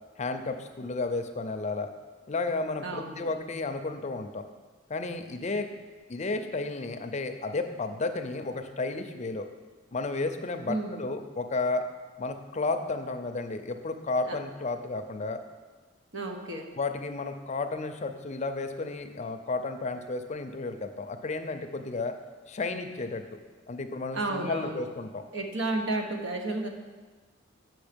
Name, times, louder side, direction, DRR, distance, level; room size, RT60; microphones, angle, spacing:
voice 1, 0.2-1.9 2.3-4.4 4.9-5.7 6.1-9.5 9.9-11.9 12.2-15.4 16.8-22.1 22.5-23.2 23.7-25.2, left 3 dB, 35° left, 7 dB, 0.5 m, -32 dB
voice 2, 2.8-3.3 10.7-11.0 14.2-14.4 16.1-16.7 24.1-24.8 25.3-26.7, right 2 dB, 75° right, 3 dB, 1.1 m, -32 dB
7.1 x 6.1 x 5.1 m, 1.4 s
head